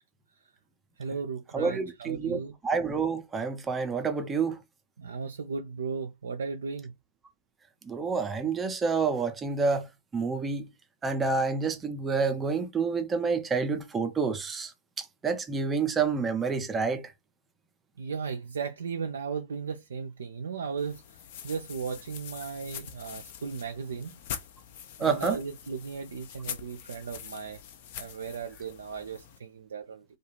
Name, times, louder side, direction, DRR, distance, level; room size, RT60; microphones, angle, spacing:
voice 1, 1.0-2.5 5.0-6.9 18.0-21.0 21.4-24.1 25.0-27.6 28.0-30.0, right 5 dB, 70° right, 0.3 m, -36 dB
voice 2, 1.5-4.6 7.9-9.9 10.1-10.7 11.0-14.7 15.0-17.1 25.0-25.4, right 5 dB, 15° right, 0.5 m, -28 dB
sound 1, 20.8-29.4, left 9 dB, 50° left, 0.5 m, -44 dB
2.3 x 2.3 x 3.0 m
figure-of-eight pair, 110°, 0 cm